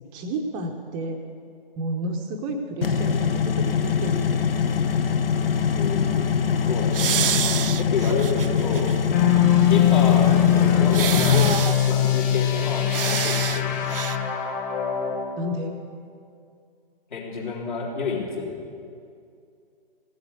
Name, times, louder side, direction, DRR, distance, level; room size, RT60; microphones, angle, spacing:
voice 1, 0.1-1.2 1.8-4.4 9.6-9.9 15.4-15.8, right 1 dB, 15° right, 4 dB, 0.6 m, -31 dB
sound 1, 2.8-11.6, left 6 dB, 70° left, 0.7 m, -23 dB
voice 2, 5.7-6.4 6.7-8.9 9.7-11.5 11.9-13.9 17.1-18.6, left 5 dB, 50° left, -3 dB, 3.6 m, -29 dB
sound 2, 6.9-9.0 9.3-9.4 10.9-12.0 12.9-13.6 13.9-14.2, right 8 dB, 70° right, 0.5 m, -27 dB
sound 3, 9.1-15.3, left 10 dB, 20° left, 1.6 m, -21 dB
16.5 x 7.9 x 8.2 m, 2.4 s
figure-of-eight pair, 125°, 29 cm